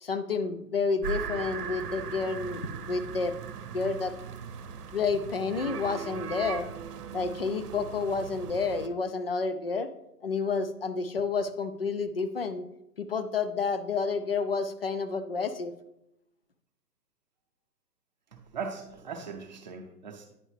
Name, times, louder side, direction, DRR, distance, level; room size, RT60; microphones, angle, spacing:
voice 1, 0.0-3.4 3.7-4.1 4.9-6.7 7.1-9.9 10.2-12.6 13.0-15.7, left 4 dB, 40° left, 11 dB, 0.4 m, -30 dB
sound 1, 1.0-8.9, right 7 dB, 70° right, 0.8 m, -39 dB
voice 2, 18.3-20.3, right 5 dB, 30° right, 3 dB, 0.7 m, -39 dB
9.8 x 5.4 x 3.2 m, 0.84 s
hypercardioid pair, 155°, 48 cm